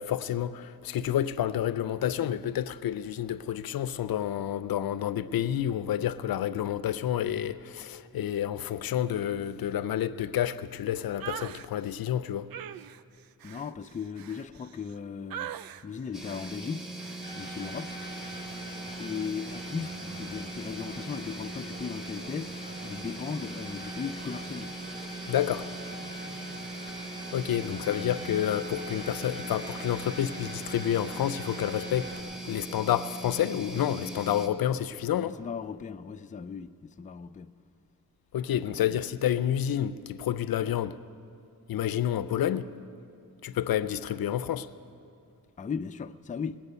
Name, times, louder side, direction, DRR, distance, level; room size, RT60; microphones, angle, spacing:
voice 1, 0.0-12.5 25.3-25.7 27.3-32.1 32.4-35.4 38.3-41.0 41.7-42.7 43.4-44.7, left 11 dB, 75° left, 0.5 m, -29 dB
sound 1, 11.2-11.7 12.5-14.9 15.3-15.8 16.3-16.6 17.0-17.2, right 10 dB, 70° right, 0.5 m, -41 dB
voice 2, 13.4-15.5 15.8-16.9 17.3-18.0 19.0-22.6 22.8-24.8 27.6-28.3 35.2-37.5 38.7-38.8 45.6-46.6, left 6 dB, 20° left, 0.4 m, -37 dB
sound 2, 16.1-34.5, right 2 dB, ahead, 1.3 m, -40 dB
sound 3, 17.2-32.2, right 1 dB, 30° right, 3.4 m, -44 dB
20.0 x 8.9 x 6.8 m
cardioid pair, 75°, 37 cm